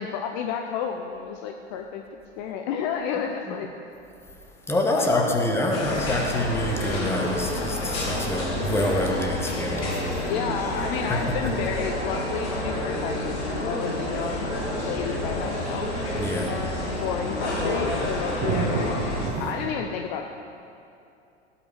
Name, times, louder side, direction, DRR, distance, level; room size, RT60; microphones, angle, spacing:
voice 1, 0.0-2.0 2.4-3.7 4.9-5.3 10.2-14.5 14.8-15.9 16.4-16.6 17.0-19.0 19.4-20.3, left 7 dB, 40° left, 4 dB, 0.7 m, -31 dB
voice 2, 4.7-10.3 11.1-11.2 16.1-16.6, left 1 dB, 5° left, 1 dB, 1.3 m, -26 dB
sound 1, 5.7-19.3, left 1 dB, 60° left, 2.6 m, -29 dB
sound 2, 15.3-15.4 15.6-15.7 17.2-19.7, right 5 dB, 35° right, 1.3 m, -30 dB
17.5 x 5.8 x 4.9 m, 2.6 s
figure-of-eight pair, 85°, 34 cm